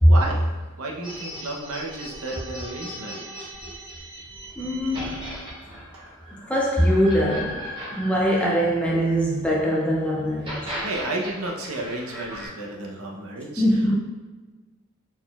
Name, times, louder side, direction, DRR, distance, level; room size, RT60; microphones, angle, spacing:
voice 1, 0.0-0.4 0.8-3.5 10.8-13.8, right 2 dB, 85° right, 0 dB, 0.7 m, -32 dB
sound 1, 1.0-9.5 10.3-12.5, equal, 25° right, 1.1 m, -37 dB
voice 2, 4.6-5.3 6.5-7.6 7.9-10.7 13.6-13.9, equal, 5° left, -3 dB, 0.3 m, -21 dB
4.1 x 3.9 x 2.2 m, 1.4 s
head